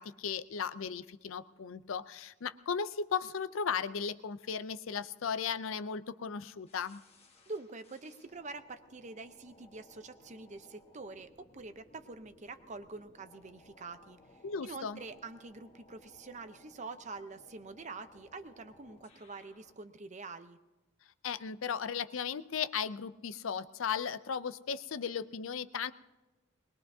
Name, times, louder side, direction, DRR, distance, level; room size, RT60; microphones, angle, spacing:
voice 1, 0.0-7.0 14.4-15.0 21.2-25.9, left 6 dB, 70° left, 13 dB, 0.5 m, -36 dB
sound 1, 6.7-19.8, left 2 dB, 30° left, 1.4 m, -61 dB
voice 2, 7.5-14.2 14.6-20.6, right 3 dB, 35° right, 10 dB, 0.7 m, -46 dB
21.5 x 21.0 x 2.7 m, 1.1 s
head